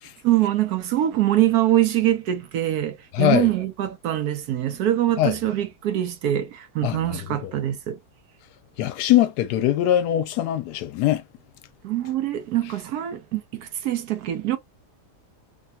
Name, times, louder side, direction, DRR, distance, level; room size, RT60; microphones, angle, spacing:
voice 1, 0.2-8.0 11.8-14.6, right 12 dB, 70° right, 1.1 m, -23 dB
voice 2, 3.1-3.5 5.2-5.3 6.8-7.5 8.8-11.2, left 12 dB, 80° left, 1.1 m, -22 dB
3.2 x 2.3 x 2.6 m
omnidirectional pair, 1.8 m